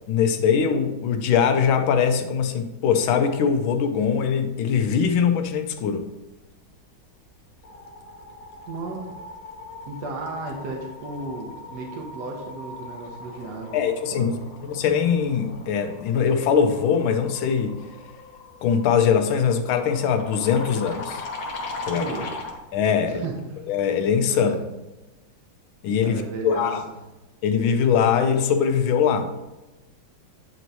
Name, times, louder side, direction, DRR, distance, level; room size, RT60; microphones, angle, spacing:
voice 1, 0.0-6.0 13.7-14.3 14.6-17.8 18.6-21.2 21.8-22.0 22.7-23.2 23.7-24.6 25.8-26.8 27.4-29.3, left 7 dB, 90° left, 7 dB, 1.5 m, -22 dB
sound 1, 6.8-7.1 7.4-22.6, left 3 dB, 70° left, 1.5 m, -39 dB
voice 2, 8.7-9.0 9.8-13.8 14.1-14.4 21.9-22.5 23.1-23.6 24.3-24.6 26.0-26.7, right 3 dB, 60° right, 0 dB, 1.4 m, -34 dB
9.0 x 3.0 x 4.0 m, 1.0 s
omnidirectional pair, 2.2 m